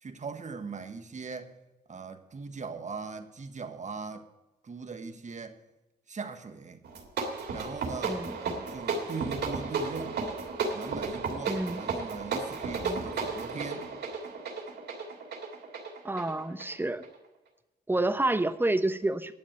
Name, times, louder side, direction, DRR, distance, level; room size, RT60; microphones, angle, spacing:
voice 1, 0.0-1.6 1.9-4.3 4.6-5.6 6.1-6.8 7.5-8.2 8.7-10.2 10.7-13.9, right 4 dB, 40° right, 1.6 m, -40 dB
sound 1, 6.8-17.2, right 4 dB, 70° right, 2.8 m, -34 dB
voice 2, 8.0-8.4 11.5-11.8 12.8-13.0 16.0-17.0 17.9-19.3, right 2 dB, 10° right, 1.0 m, -29 dB
11.0 x 7.2 x 9.0 m
supercardioid pair, 55°, 18 cm